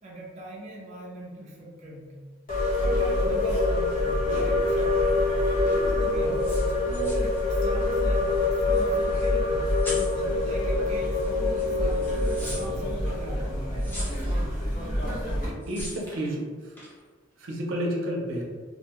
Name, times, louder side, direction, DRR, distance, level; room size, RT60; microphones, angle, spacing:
voice 1, 0.0-2.2 2.7-3.9 4.3-5.3 6.0-6.8 7.4-9.7 10.4-13.5 13.9-14.6, right 1 dB, 35° right, -5 dB, 0.5 m, -42 dB
sound 1, 2.5-15.5, left 2 dB, 45° left, 0.9 m, -25 dB
sound 2, 5.1-5.2 6.2-8.1 8.3-8.4 8.7-9.3 9.6-10.3 11.1-11.3 11.6-12.7 13.8-14.4 15.6-16.4 16.8-17.0, left 1 dB, 10° left, 0.5 m, -40 dB
voice 2, 15.7-16.8 17.4-18.5, equal, 85° right, -2 dB, 0.6 m, -30 dB
2.5 x 2.2 x 2.9 m, 1.5 s
head